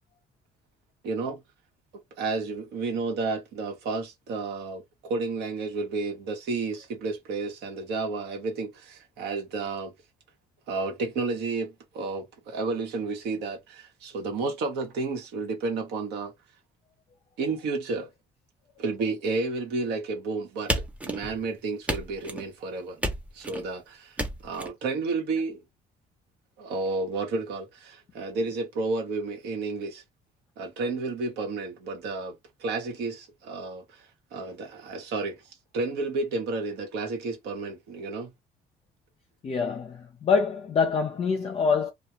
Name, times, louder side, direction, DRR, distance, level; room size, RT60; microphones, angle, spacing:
voice 1, 1.0-1.4 2.2-9.9 10.7-16.3 17.4-18.1 18.8-20.7 21.0-23.0 23.3-24.2 24.4-25.6 26.6-30.0 30.6-34.0 34.3-35.4 35.7-38.3, right 3 dB, 80° right, 1.0 m, -31 dB
sound 1, 20.7-21.5 21.9-22.5 23.0-23.7 24.2-24.7, right 1 dB, 10° right, 0.7 m, -31 dB
voice 2, 39.4-41.9, left 5 dB, 35° left, 0.5 m, -25 dB
2.3 x 2.2 x 2.8 m
cardioid pair, 110°, 17 cm